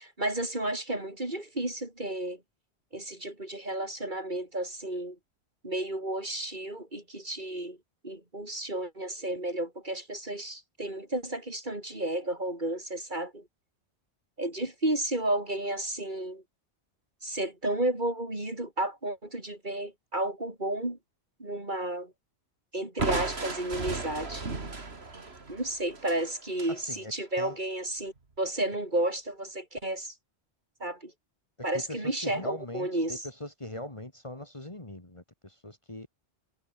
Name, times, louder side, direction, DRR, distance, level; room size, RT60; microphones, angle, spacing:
voice 1, 0.0-2.4 2.9-5.2 5.6-7.8 8.0-13.4 14.4-16.4 17.2-21.0 21.4-22.1 22.7-24.4 25.5-30.1 30.8-31.1 31.6-33.3, right 1 dB, 45° right, 4.9 m, -32 dB
Crushing, 23.0-26.8, right 3 dB, 65° right, 3.0 m, -35 dB
voice 2, 26.7-27.6 31.6-36.1, left 1 dB, 25° left, 2.3 m, -41 dB
omnidirectional pair, 1.2 m